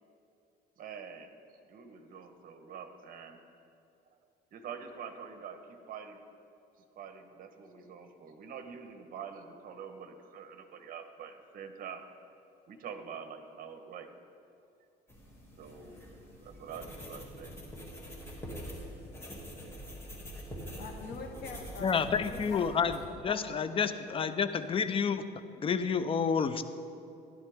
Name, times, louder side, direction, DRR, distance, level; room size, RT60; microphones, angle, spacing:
voice 1, 0.8-1.3 1.7-3.4 4.5-6.2 7.0-12.0 12.7-14.2 15.6-16.1 16.4-17.6, right 7 dB, 55° right, 7 dB, 1.2 m, -45 dB
sound 1, 15.1-23.0, equal, 15° left, 2.4 m, -45 dB
voice 2, 20.7-24.4, left 4 dB, 70° left, 3 dB, 1.5 m, -45 dB
voice 3, 21.8-23.0 23.2-25.2 25.6-26.6, left 6 dB, 35° left, 11 dB, 0.6 m, -29 dB
15.0 x 11.0 x 3.6 m, 2.6 s
cardioid pair, 110°, 17 cm